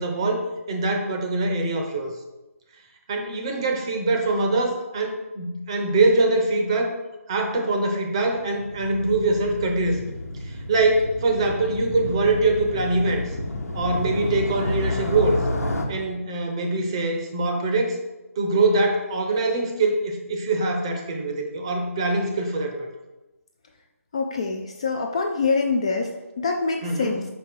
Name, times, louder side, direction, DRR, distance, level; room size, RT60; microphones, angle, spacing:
voice 1, 0.0-2.1 3.1-6.9 7.3-10.0 10.4-13.3 13.7-15.4 15.9-18.0 18.4-22.9 26.8-27.2, right 2 dB, 20° right, 3 dB, 0.7 m, -23 dB
Motorcycle, 8.3-15.9, left 2 dB, 80° left, 1.2 m, -30 dB
voice 2, 24.1-27.3, left 4 dB, 25° left, 3 dB, 0.4 m, -25 dB
5.3 x 5.2 x 4.7 m, 1.0 s
hypercardioid pair, 170°, 8 cm